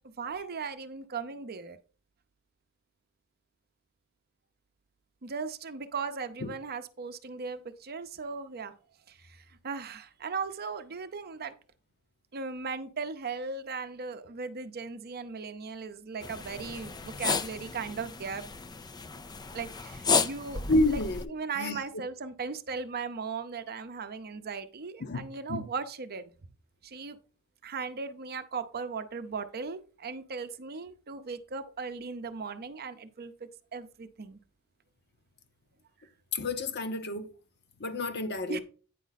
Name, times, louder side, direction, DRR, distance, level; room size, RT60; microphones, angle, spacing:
voice 1, 0.0-1.8 5.2-8.7 9.1-11.5 12.3-18.4 19.5-20.6 20.9-21.0 21.3-26.3 26.8-27.2 27.6-34.4 38.5-38.6, right 5 dB, 45° right, 0.7 m, -37 dB
sound 1, 16.2-21.2, left 5 dB, 20° left, 0.3 m, -33 dB
voice 2, 20.7-21.8 25.0-25.2 25.5-25.6 36.3-37.3 37.8-38.6, left 2 dB, 50° left, 0.9 m, -30 dB
9.1 x 5.1 x 4.0 m
head